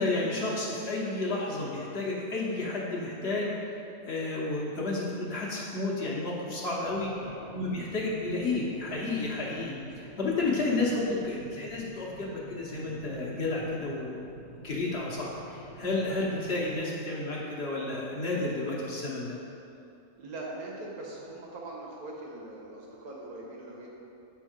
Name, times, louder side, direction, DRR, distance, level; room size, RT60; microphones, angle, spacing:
voice 1, 0.0-3.5 4.0-7.1 7.5-14.2 14.5-19.4, left 2 dB, 50° left, -4 dB, 1.0 m, -31 dB
sound 1, 6.8-16.8, right 1 dB, 15° left, 0.6 m, -49 dB
voice 2, 7.2-7.6 10.7-10.9 11.4-11.7 20.2-23.9, right 2 dB, 85° right, -3 dB, 1.6 m, -42 dB
6.9 x 3.5 x 5.0 m, 2.7 s
omnidirectional pair, 1.5 m